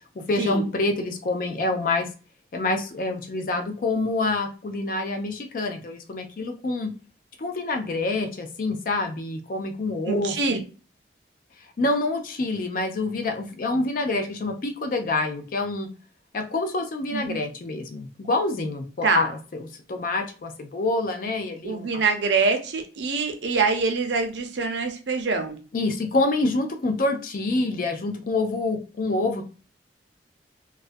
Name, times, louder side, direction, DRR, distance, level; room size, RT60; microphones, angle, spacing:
voice 1, 0.2-2.1 2.5-6.9 7.4-10.6 11.8-15.9 16.3-22.0 25.7-29.4, left 2 dB, 50° left, 6 dB, 0.4 m, -27 dB
voice 2, 10.1-10.6 17.1-17.4 19.0-19.3 21.6-25.6, right 4 dB, 80° right, 5 dB, 0.5 m, -25 dB
2.3 x 2.1 x 2.5 m, 0.36 s
head